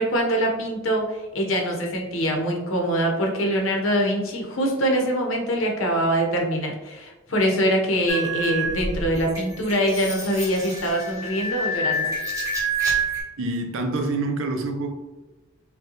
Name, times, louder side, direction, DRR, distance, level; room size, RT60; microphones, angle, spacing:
voice 1, 0.0-12.1, equal, 75° left, 1 dB, 0.9 m, -24 dB
sound 1, 8.1-13.2, right 2 dB, 15° right, 1.1 m, -27 dB
voice 2, 13.4-14.9, right 2 dB, 75° right, 5 dB, 0.6 m, -26 dB
5.2 x 2.3 x 2.9 m, 1.2 s
head